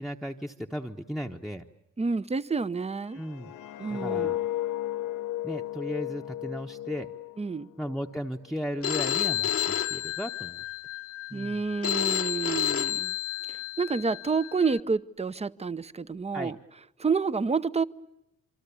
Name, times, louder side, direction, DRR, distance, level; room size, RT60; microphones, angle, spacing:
voice 1, 0.0-1.6 3.1-3.5 3.9-4.4 5.4-7.1 7.8-9.5 9.9-10.6 11.3-11.7 16.3-16.5, equal, ahead, 3 dB, 1.1 m, -35 dB
voice 2, 2.0-3.2 3.8-4.4 7.4-7.7 11.3-13.1 13.5-16.6 17.0-17.8, right 4 dB, 20° right, 16 dB, 0.9 m, -29 dB
sound 1, 3.1-8.1 8.5-8.8, left 14 dB, 80° left, 1.2 m, -34 dB
Telephone, 8.8-14.8, left 11 dB, 45° left, 1.1 m, -31 dB
27.0 x 24.0 x 7.1 m, 0.83 s
cardioid pair, 90°, 30 cm